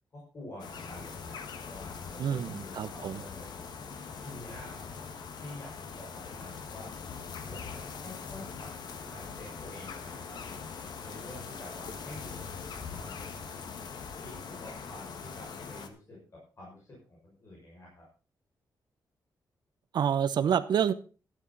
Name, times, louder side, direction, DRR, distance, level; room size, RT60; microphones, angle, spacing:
voice 1, 0.1-3.6 4.2-4.8 5.4-6.9 7.4-8.7 9.0-10.4 11.0-12.4 12.8-13.4 14.1-16.2 16.6-18.0, left 1 dB, 40° left, -4 dB, 6.3 m, -48 dB
sound 1, 0.6-15.9, left 5 dB, 70° left, 1.8 m, -42 dB
voice 2, 2.2-3.2 19.9-20.9, right 8 dB, 70° right, 12 dB, 0.9 m, -28 dB
13.0 x 12.0 x 4.1 m, 0.35 s
wide cardioid pair, 170°, 8 cm